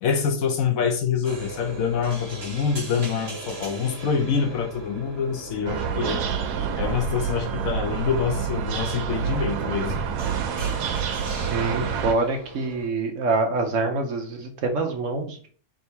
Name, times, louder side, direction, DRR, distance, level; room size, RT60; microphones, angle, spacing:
voice 1, 0.0-6.2 6.8-10.0, left 6 dB, 65° left, 5 dB, 1.0 m, -26 dB
sound 1, 1.2-12.9, right 2 dB, 45° right, 1.4 m, -40 dB
sound 2, 5.7-12.1, right 7 dB, 90° right, 1.2 m, -28 dB
voice 2, 11.3-15.5, right 3 dB, 60° right, 3 dB, 0.9 m, -26 dB
3.6 x 2.7 x 4.4 m, 0.42 s
omnidirectional pair, 1.6 m